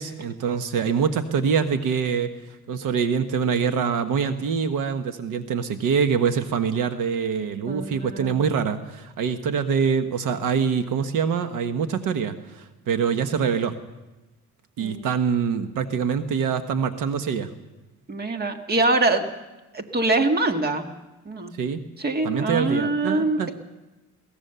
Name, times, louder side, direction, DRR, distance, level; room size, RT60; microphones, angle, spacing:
voice 1, 0.0-13.7 14.8-17.5 21.6-21.8 22.2-23.5, right 6 dB, 70° right, 9 dB, 1.3 m, -25 dB
voice 2, 7.7-8.5 14.8-15.1 18.1-19.3 19.7-20.8 21.3-21.5 22.0-23.5, right 2 dB, 30° right, 6 dB, 1.8 m, -24 dB
22.0 x 17.5 x 6.9 m, 1.0 s
cardioid pair, 130°, 32 cm